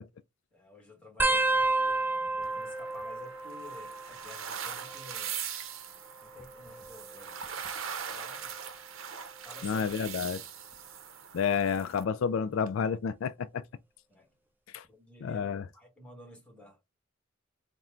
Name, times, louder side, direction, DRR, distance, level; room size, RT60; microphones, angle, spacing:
voice 1, 0.5-5.4 6.2-7.4 8.1-8.6 9.4-10.1 14.1-14.3 14.9-16.9, left 2 dB, 5° left, 1.5 m, -52 dB
sound 1, 1.2-4.4 4.7-5.3 6.2-7.7 8.3-8.7 9.9-10.3 11.8-11.9, right 2 dB, 10° right, 0.3 m, -32 dB
sound 2, 2.4-12.0, right 7 dB, 75° right, 0.7 m, -41 dB
voice 2, 9.6-10.4 11.3-13.6 14.7-14.8 15.2-15.6, left 6 dB, 75° left, 0.3 m, -30 dB
4.3 x 2.2 x 3.7 m
head